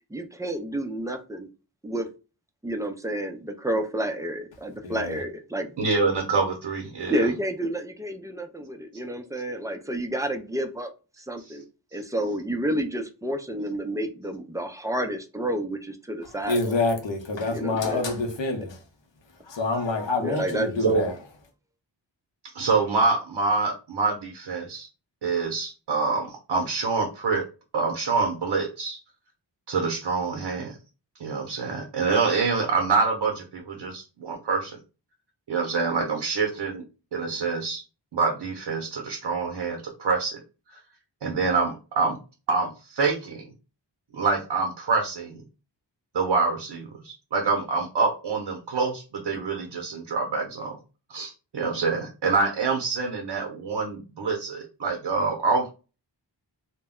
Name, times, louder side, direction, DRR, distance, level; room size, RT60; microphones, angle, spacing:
voice 1, 0.1-1.5 1.8-2.1 2.6-5.8 7.1-10.9 11.2-11.6 11.9-16.7 17.5-18.0 20.2-20.7, right 1 dB, 10° right, 0.3 m, -30 dB
voice 2, 4.8-5.2 16.5-18.8 19.5-21.1, left 3 dB, 75° left, 0.8 m, -26 dB
voice 3, 5.8-7.2 11.5-11.6 20.8-21.1 22.5-24.9 25.2-27.4 27.7-29.0 29.7-30.8 31.2-34.8 35.5-36.8 37.1-37.8 38.1-40.4 41.2-42.2 42.5-43.4 44.1-45.4 46.1-50.8 51.1-55.7, right 4 dB, 65° right, 0.6 m, -26 dB
2.2 x 2.0 x 3.5 m
wide cardioid pair, 60°, 45 cm